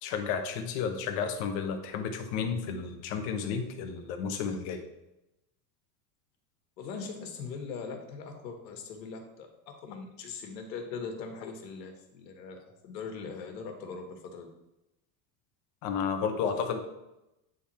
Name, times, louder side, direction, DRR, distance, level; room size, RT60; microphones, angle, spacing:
voice 1, 0.0-4.8 15.8-16.8, left 6 dB, 50° left, 6 dB, 1.0 m, -32 dB
voice 2, 6.8-14.5 16.4-16.6, left 5 dB, 90° left, 3 dB, 1.7 m, -41 dB
9.4 x 3.7 x 4.2 m, 0.91 s
supercardioid pair, 160°, 49 cm